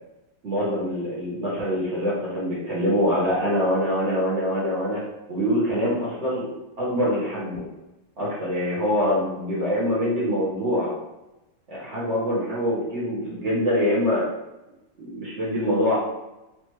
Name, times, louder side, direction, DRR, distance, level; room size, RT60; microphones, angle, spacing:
voice 1, 0.4-5.0 5.3-6.5 6.8-7.6 8.2-10.9 11.7-14.2 15.0-16.0, equal, 40° right, -7 dB, 1.6 m, -24 dB
4.5 x 3.2 x 3.1 m, 0.97 s
omnidirectional pair, 2.2 m